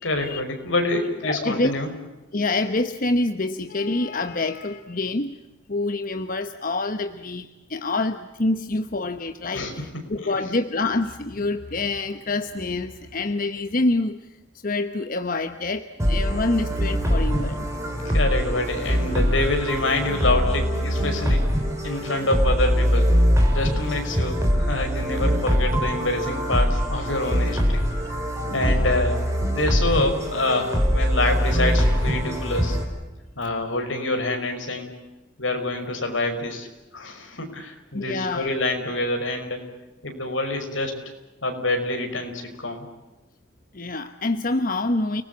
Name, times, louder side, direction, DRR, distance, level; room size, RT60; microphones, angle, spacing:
voice 1, 0.0-1.9 9.5-9.7 10.2-10.3 18.1-21.5 21.8-23.1 23.5-28.2 28.5-29.2 29.5-32.8 33.4-34.9 35.4-36.7 36.9-39.6 40.0-41.0 41.4-42.9, left 2 dB, 80° left, 5 dB, 5.7 m, -26 dB
voice 2, 1.2-1.7 2.3-5.4 5.7-17.7 28.5-28.9 37.9-38.5 43.7-45.2, left 2 dB, 45° left, 9 dB, 1.0 m, -26 dB
sound 1, 16.0-32.8, equal, 15° right, 6.2 m, -23 dB
30.0 x 20.0 x 8.5 m, 1.0 s
head